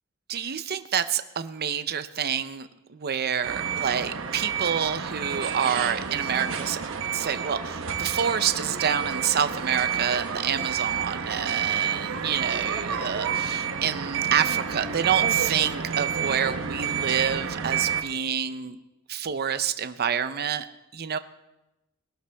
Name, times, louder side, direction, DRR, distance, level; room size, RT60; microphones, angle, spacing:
voice 1, 0.3-18.8 19.1-20.7 20.9-21.2, right 8 dB, 45° right, 11 dB, 0.6 m, -28 dB
sound 1, 3.4-18.0, right 7 dB, 60° right, 1.0 m, -29 dB
21.0 x 12.0 x 3.5 m, 0.98 s
head